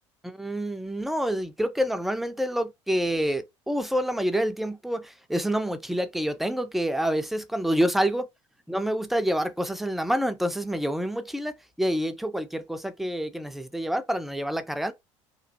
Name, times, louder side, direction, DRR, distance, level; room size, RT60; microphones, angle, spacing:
voice 1, 0.2-8.3 8.7-14.9, equal, ahead, 0.4 m, -27 dB
3.0 x 2.3 x 2.6 m
figure-of-eight pair, 60°, 16 cm